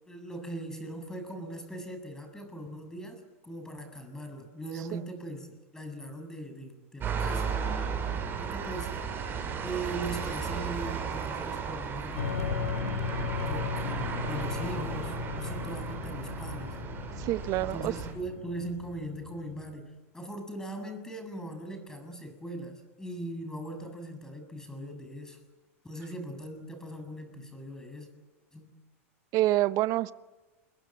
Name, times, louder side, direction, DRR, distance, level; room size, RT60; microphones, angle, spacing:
voice 1, 0.0-7.5 8.4-9.2 9.6-12.7 13.5-16.8 17.6-25.4 25.8-28.1 28.5-28.7, right 1 dB, 10° left, 6 dB, 7.3 m, -40 dB
sound 1, 7.0-18.1, right 6 dB, 30° right, 7.6 m, -35 dB
sound 2, 12.2-19.8, left 5 dB, 85° left, 5.2 m, -36 dB
voice 2, 17.2-17.9 29.3-30.1, right 15 dB, 50° right, 15 dB, 0.9 m, -26 dB
29.0 x 23.0 x 7.5 m, 1.2 s
hypercardioid pair, 105°, 7 cm